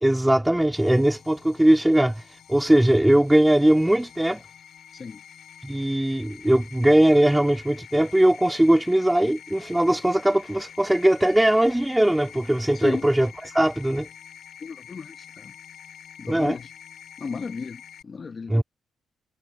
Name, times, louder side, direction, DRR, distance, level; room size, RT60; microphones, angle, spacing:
voice 1, 0.0-4.4 5.6-14.1 16.3-16.6 18.5-18.6, right 1 dB, 5° right, 1.9 m, -20 dB
sound 1, 0.7-18.0, left 9 dB, 70° left, 5.0 m, -47 dB
voice 2, 12.7-13.1 14.6-15.5 16.2-16.7 17.2-18.6, left 5 dB, 40° left, 0.9 m, -34 dB
cardioid pair, 90°, 0 cm